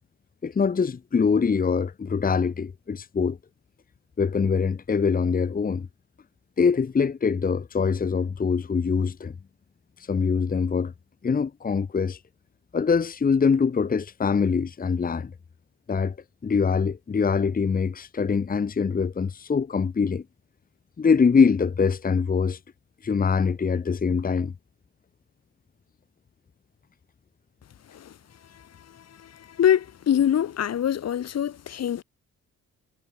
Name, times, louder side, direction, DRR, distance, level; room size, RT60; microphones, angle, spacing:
voice 1, 0.4-3.4 4.2-5.9 6.6-9.3 10.0-10.9 11.2-12.2 12.7-15.3 15.9-16.2 16.4-20.2 21.0-22.6 23.0-24.5, left 5 dB, 30° left, 1.2 m, -23 dB
voice 2, 29.6-32.0, left 9 dB, 55° left, 1.9 m, -23 dB
cardioid pair, 90°, 30 cm